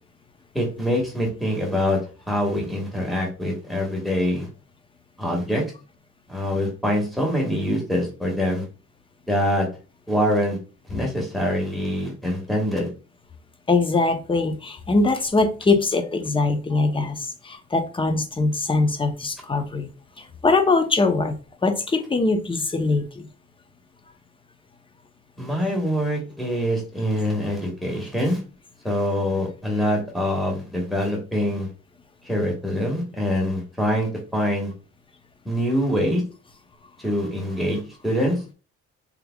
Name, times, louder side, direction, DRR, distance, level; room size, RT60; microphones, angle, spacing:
voice 1, 0.5-2.0 2.3-4.5 5.2-5.6 6.3-8.6 9.3-9.7 10.1-10.6 10.9-12.9 25.4-28.4 28.8-31.7 32.2-34.7 35.4-36.2 37.0-38.4, equal, ahead, 1.5 m, -24 dB
voice 2, 13.7-19.9 20.2-21.4 21.6-23.3, left 3 dB, 15° left, 0.6 m, -22 dB
3.6 x 3.2 x 2.2 m
cardioid pair, 90°, 30 cm